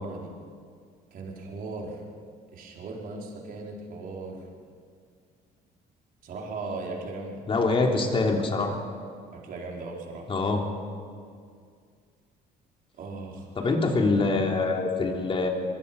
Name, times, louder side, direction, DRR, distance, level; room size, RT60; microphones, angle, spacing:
voice 1, 1.1-2.0 2.5-4.4 6.2-7.4 9.3-10.3 13.0-13.7, right 3 dB, 55° right, -2 dB, 4.7 m, -38 dB
voice 2, 7.5-8.8 10.3-10.6 13.6-15.5, left 3 dB, 35° left, 1 dB, 3.4 m, -24 dB
23.5 x 23.5 x 5.5 m, 2.2 s
cardioid pair, 110°, 17 cm